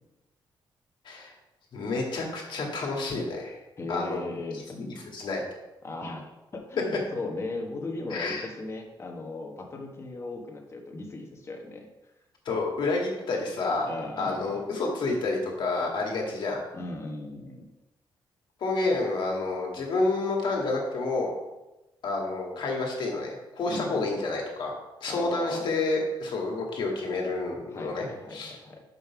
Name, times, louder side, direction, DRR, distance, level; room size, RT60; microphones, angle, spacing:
voice 1, 1.7-3.6 3.9-4.2 4.5-4.9 5.1-5.4 8.1-8.5 12.5-13.9 14.2-16.7 18.6-21.3 22.0-24.7 25.0-28.1 28.3-28.6, left 3 dB, 65° left, 0 dB, 1.8 m, -29 dB
voice 2, 3.8-4.8 5.8-11.9 13.9-14.7 16.7-17.7 23.7-24.1 25.1-25.7 27.7-28.8, left 2 dB, 30° left, 2 dB, 1.3 m, -37 dB
5.5 x 5.3 x 5.8 m, 1.0 s
cardioid pair, 125°, 9 cm